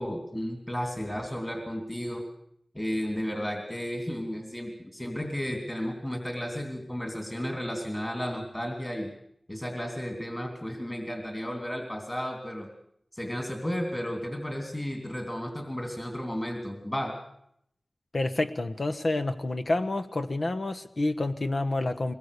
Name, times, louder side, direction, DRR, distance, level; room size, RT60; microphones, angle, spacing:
voice 1, 0.0-2.3 2.7-9.1 9.5-12.7 13.1-17.1, equal, 20° left, 3 dB, 3.2 m, -33 dB
voice 2, 18.1-22.1, left 2 dB, 55° left, 8 dB, 1.1 m, -28 dB
22.5 x 21.0 x 6.8 m, 0.71 s
wide cardioid pair, 85°, 0 cm